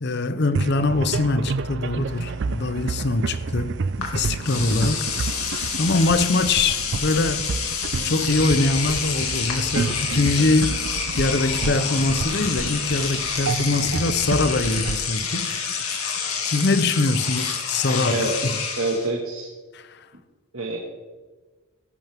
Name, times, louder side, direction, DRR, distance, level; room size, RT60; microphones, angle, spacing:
voice 1, 0.0-5.0 5.8-7.5 8.0-10.8 11.2-15.5 16.4-18.5 19.7-20.0, left 3 dB, 50° left, 0.7 m, -23 dB
sound 1, 0.5-16.2, right 4 dB, 55° right, 0.4 m, -30 dB
Engine / Domestic sounds home sounds, 4.0-4.1 4.4-19.1, left 6 dB, 80° left, 2.5 m, -28 dB
voice 2, 18.8-19.5 20.5-20.8, right 2 dB, 80° right, 2.0 m, -26 dB
18.5 x 11.0 x 3.6 m
head